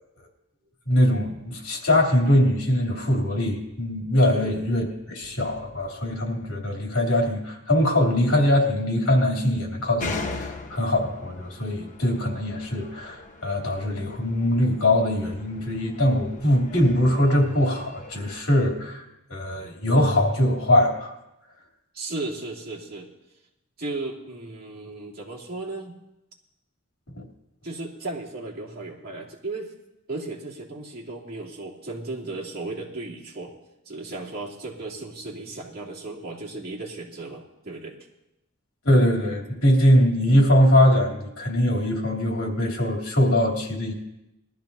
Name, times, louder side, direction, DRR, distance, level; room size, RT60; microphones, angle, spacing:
voice 1, 0.9-19.0 19.3-21.1 27.2-27.3 38.8-43.9, left 1 dB, 70° left, -1 dB, 3.0 m, -22 dB
sound 1, 10.0-18.4, left 3 dB, 35° left, 1.1 m, -39 dB
voice 2, 21.9-23.1 23.8-25.9 27.6-29.7 30.1-33.5 33.8-38.0, right 2 dB, 45° right, -4 dB, 2.8 m, -35 dB
20.5 x 13.0 x 2.7 m, 0.90 s
head